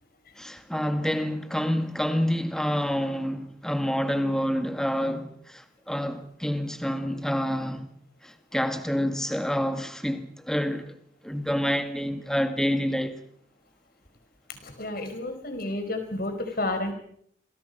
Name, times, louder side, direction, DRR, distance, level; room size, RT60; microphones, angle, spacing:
voice 1, 0.4-7.9 8.2-10.9 11.2-13.1, equal, 5° left, 1.9 m, -28 dB
voice 2, 14.6-16.9, left 2 dB, 50° left, 5.1 m, -31 dB
28.0 x 23.0 x 5.7 m
head